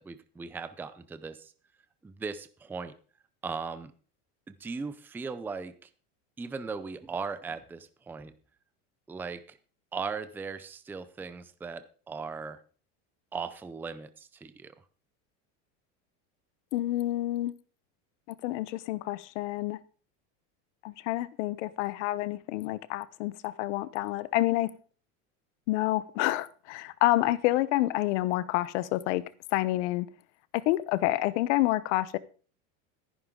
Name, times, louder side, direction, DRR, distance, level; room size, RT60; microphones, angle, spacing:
voice 1, 0.0-1.5 2.0-2.9 3.4-3.9 4.5-5.9 6.4-8.3 9.1-9.6 9.9-12.6 13.3-14.7, right 5 dB, 5° right, 0.5 m, -38 dB
voice 2, 16.7-17.5 18.4-19.8 20.8-24.7 25.7-29.2 29.5-30.1 30.5-32.2, left 16 dB, 75° left, 1.0 m, -28 dB
14.0 x 11.0 x 3.8 m
supercardioid pair, 150°, 36 cm